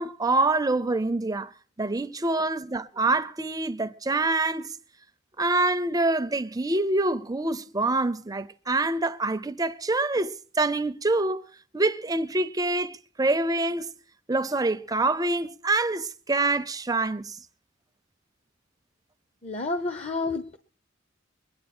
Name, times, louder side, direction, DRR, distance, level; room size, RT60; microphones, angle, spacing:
voice 1, 0.0-1.5 1.8-4.8 5.4-11.4 11.7-13.9 14.3-17.4, right 2 dB, 20° right, 0.6 m, -26 dB
voice 2, 19.4-20.6, left 3 dB, 35° left, 0.9 m, -30 dB
22.0 x 9.7 x 4.4 m
head